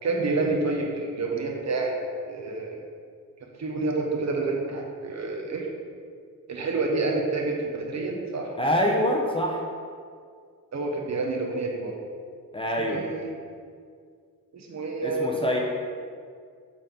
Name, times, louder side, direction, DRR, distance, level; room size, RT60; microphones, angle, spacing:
voice 1, 0.0-2.0 2.2-2.8 3.6-5.7 6.5-8.5 10.7-12.0 12.8-13.3 14.5-15.4, right 3 dB, 50° right, 0 dB, 1.0 m, -28 dB
voice 2, 8.6-9.6 12.5-13.0 15.0-15.6, equal, 15° left, -1 dB, 0.6 m, -25 dB
6.6 x 3.9 x 5.2 m, 2.1 s
wide cardioid pair, 145°, 35 cm